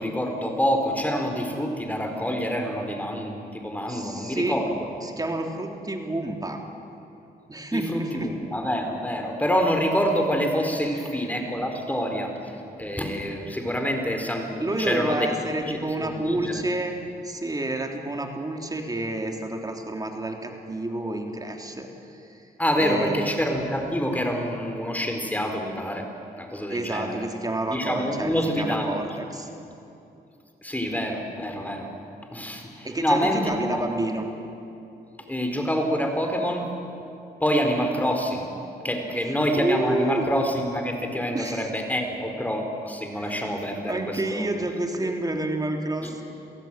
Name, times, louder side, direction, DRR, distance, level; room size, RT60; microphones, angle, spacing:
voice 1, 0.0-4.9 7.7-16.5 22.6-26.1 26.3-27.1 27.7-29.0 30.6-31.9 32.3-33.8 35.3-36.7 37.4-38.5 38.8-44.5 45.0-45.1 46.0-46.1, equal, 10° left, 4 dB, 4.3 m, -27 dB
voice 2, 3.9-6.6 7.5-8.3 10.9-11.2 14.6-17.0 17.2-22.5 22.8-23.3 26.7-29.5 32.8-34.3 39.2-40.3 41.3-41.7 43.1-43.4 43.9-46.2, right 2 dB, 20° right, 3 dB, 3.3 m, -29 dB
28.0 x 16.5 x 9.2 m, 2.7 s
cardioid pair, 80°, 17 cm